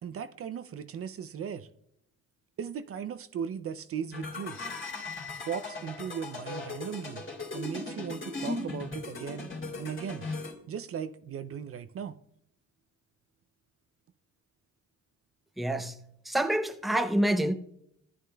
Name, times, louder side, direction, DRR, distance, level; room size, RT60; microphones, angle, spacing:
voice 1, 0.0-1.7 2.6-4.6 5.4-7.2 7.5-9.5 9.8-10.3 10.7-12.2, right 7 dB, 50° right, 0.5 m, -37 dB
sound 1, 4.1-10.5, left 3 dB, 40° left, 3.0 m, -38 dB
voice 2, 15.6-15.9 16.3-17.5, right 1 dB, ahead, 0.6 m, -27 dB
14.5 x 9.5 x 2.3 m
cardioid pair, 90°, 30 cm